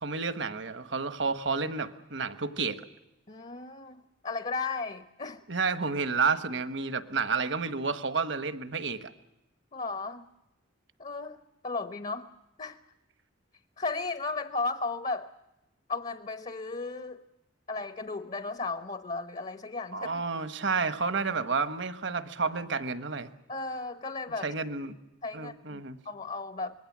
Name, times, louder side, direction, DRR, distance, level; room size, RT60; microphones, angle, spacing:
voice 1, 0.0-2.8 5.5-9.1 19.9-23.3 24.4-25.0 25.3-26.0, right 4 dB, 60° right, 11 dB, 1.4 m, -30 dB
voice 2, 3.3-5.4 9.7-10.2 11.0-12.3 12.6-12.8 13.8-15.3 15.9-17.2 17.7-20.1 23.5-24.5 25.2-26.7, left 3 dB, 35° left, 10 dB, 0.9 m, -35 dB
26.0 x 21.0 x 7.4 m, 0.92 s
head